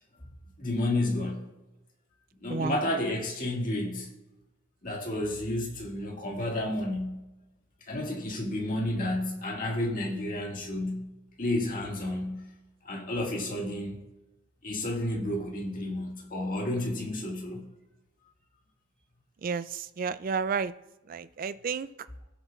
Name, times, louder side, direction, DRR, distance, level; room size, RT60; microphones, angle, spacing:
voice 1, 0.6-1.4 2.4-4.1 4.8-7.3 7.9-11.1 11.4-12.5 12.9-14.0 14.6-17.7, left 1 dB, 40° left, 1.8 m, -31 dB
voice 2, 19.4-20.7 21.1-21.9, right 5 dB, 40° right, 0.3 m, -31 dB
17.5 x 6.9 x 2.4 m
head